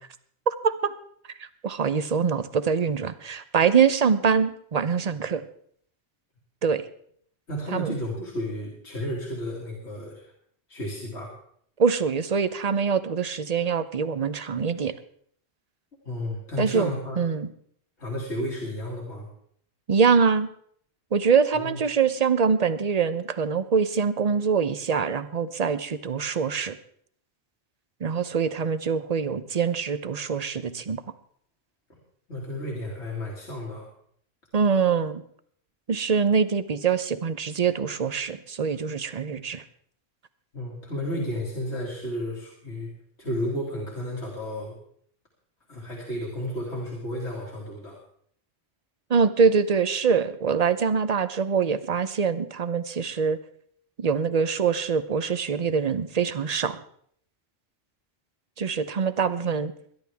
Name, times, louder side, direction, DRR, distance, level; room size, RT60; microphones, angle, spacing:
voice 1, 0.5-0.9 1.4-5.4 6.6-6.8 7.7-7.9 11.8-14.9 16.6-16.9 17.2-17.5 19.9-20.5 21.1-26.8 28.0-31.0 34.5-35.2 35.9-39.6 49.1-53.4 54.0-56.8 58.6-59.7, right 6 dB, 40° right, 13 dB, 0.8 m, -24 dB
voice 2, 7.5-10.3 10.7-11.3 16.0-17.2 18.0-19.3 21.5-21.8 31.9-32.0 32.3-33.9 40.5-42.9 43.2-44.8 45.7-48.0, left 1 dB, 90° left, -3 dB, 2.8 m, -32 dB
21.5 x 11.0 x 3.5 m, 0.63 s
omnidirectional pair, 1.1 m